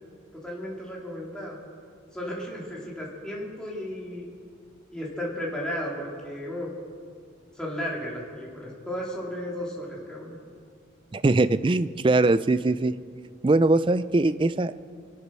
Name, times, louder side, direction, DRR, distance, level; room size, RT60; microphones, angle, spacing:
voice 1, 0.3-1.6 2.1-4.2 4.9-6.7 7.5-10.4, equal, 5° left, -5 dB, 2.8 m, -34 dB
voice 2, 11.1-13.0 13.4-14.7, right 2 dB, 25° right, 14 dB, 0.3 m, -21 dB
24.5 x 8.3 x 6.1 m, 2.2 s
head